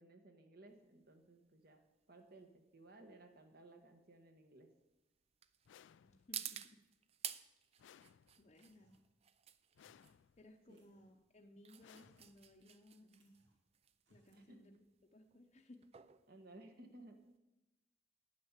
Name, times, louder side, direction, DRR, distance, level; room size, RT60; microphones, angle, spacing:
voice 1, 0.0-4.7 10.7-10.9 14.3-14.7 16.3-17.2, right 2 dB, 55° right, 5 dB, 1.5 m, -59 dB
sound 1, 0.7-17.4, right 10 dB, 35° right, 0.4 m, -53 dB
sound 2, 5.7-6.5 7.8-8.7 9.8-10.6 11.8-12.7, left 8 dB, 85° left, 0.3 m, -64 dB
voice 2, 6.0-6.8 7.3-7.4 8.4-8.9 10.4-13.4 14.1-14.8 15.1-15.8, left 1 dB, 35° left, 2 dB, 0.7 m, -62 dB
sound 3, 8.5-9.2 9.8-10.2 10.7-11.1 11.8-12.4 12.7-12.8 13.1-13.6 14.0-14.5, right 1 dB, 85° right, 2.3 m, -75 dB
9.7 x 9.6 x 7.3 m, 1.0 s
head